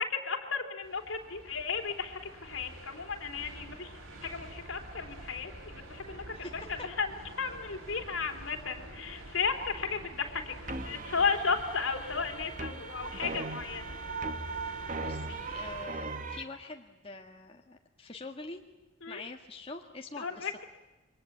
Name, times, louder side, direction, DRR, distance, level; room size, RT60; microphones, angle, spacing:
voice 1, 0.0-3.9 4.3-5.5 5.9-6.2 7.0-7.1 7.4-10.5 10.8-13.8 19.0-19.2 20.2-20.5, left 5 dB, 75° left, 6 dB, 3.2 m, -34 dB
sound 1, 0.8-15.9, right 1 dB, 85° right, 4.1 m, -47 dB
voice 2, 6.3-6.9 14.7-18.6 19.1-20.6, left 3 dB, 25° left, 2 dB, 1.8 m, -45 dB
sound 2, 10.7-16.4, right 3 dB, 40° right, 1.4 m, -39 dB
28.5 x 24.0 x 8.6 m, 1.1 s
head